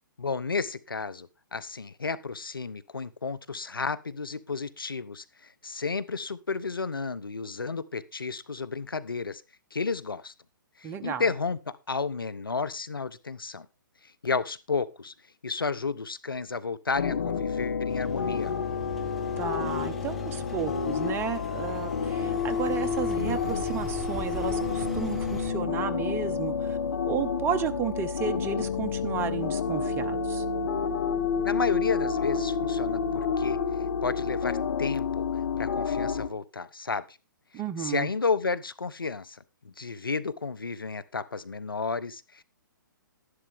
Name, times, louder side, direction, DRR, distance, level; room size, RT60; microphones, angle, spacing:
voice 1, 0.2-9.4 9.7-10.3 10.8-13.7 14.0-15.1 15.4-18.5 31.4-33.6 34.0-35.3 35.6-37.2 37.8-42.4, left 4 dB, 85° left, 15 dB, 1.0 m, -32 dB
voice 2, 10.8-11.2 19.4-26.8 27.1-30.4 37.5-38.1, right 8 dB, 20° right, 11 dB, 1.0 m, -33 dB
sound 1, 17.0-36.3, left 6 dB, 65° left, 1.7 m, -29 dB
Engine, 17.9-25.5, right 2 dB, ahead, 1.5 m, -41 dB
11.5 x 11.5 x 3.6 m, 0.28 s
figure-of-eight pair, 130°, 11 cm